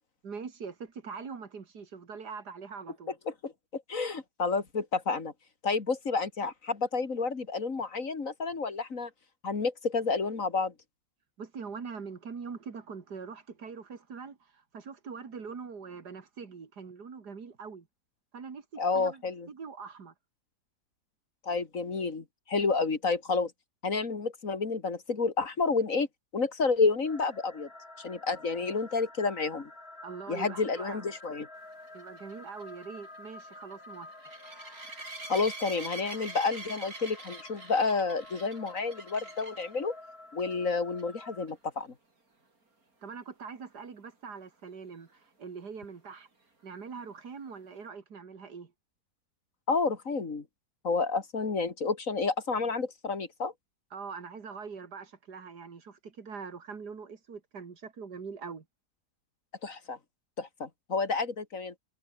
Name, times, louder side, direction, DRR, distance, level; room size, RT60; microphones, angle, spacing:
voice 1, 0.2-3.2 11.4-17.9 18.3-20.1 30.0-31.1 31.9-34.2 43.0-46.3 46.6-48.7 53.9-58.6, right 5 dB, 85° right, 2.9 m, -43 dB
voice 2, 3.3-5.3 5.6-9.1 9.4-10.7 18.8-19.5 21.4-23.5 23.8-26.1 26.3-27.7 28.0-29.7 30.3-31.5 35.3-39.9 40.3-41.9 49.7-50.4 50.8-53.5 59.6-60.0 60.4-61.7, left 4 dB, 55° left, 2.7 m, -30 dB
sound 1, 27.0-41.5, left 2 dB, 40° left, 4.9 m, -50 dB
sound 2, 31.9-39.8 40.4-40.7 41.0-41.1 41.5-41.6 45.1-45.2, right 3 dB, 60° right, 5.1 m, -45 dB
omnidirectional pair, 1.7 m